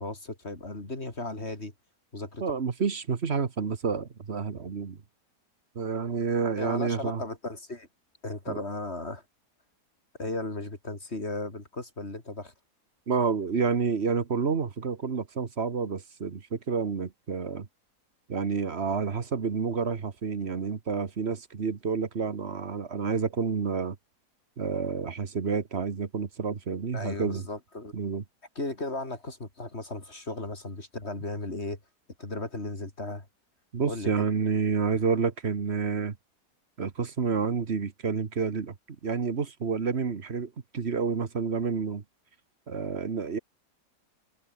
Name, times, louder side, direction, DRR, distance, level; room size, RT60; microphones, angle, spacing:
voice 1, 0.0-1.7 2.1-2.4 6.6-7.9 8.2-9.2 10.2-12.5 26.9-27.9 28.6-31.8 32.2-33.3 33.9-34.2, left 2 dB, 40° left, 4.2 m, -36 dB
voice 2, 2.4-5.0 5.7-7.2 8.5-8.6 13.1-17.7 18.3-24.0 24.6-27.5 27.9-28.2 33.7-36.2 36.8-38.7 39.0-42.0 42.7-43.4, right 5 dB, 40° right, 1.5 m, -29 dB
omnidirectional pair, 1.7 m